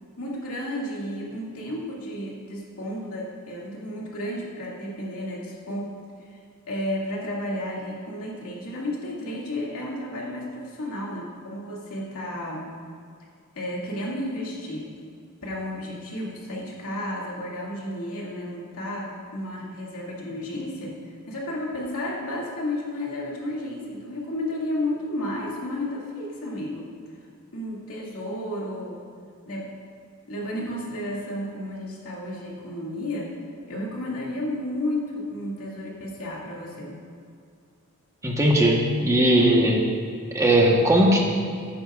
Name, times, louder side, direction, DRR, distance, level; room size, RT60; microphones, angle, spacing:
voice 1, 0.2-5.9 6.2-6.4 6.7-12.7 13.5-14.9 15.4-21.0 21.3-26.9 27.5-29.0 29.4-29.7 30.3-33.3 33.7-37.0, left 1 dB, 85° left, -4 dB, 2.4 m, -32 dB
voice 2, 38.2-39.9 40.3-41.2, right 1 dB, 15° right, -2 dB, 1.1 m, -18 dB
14.5 x 10.0 x 2.5 m, 2.2 s
head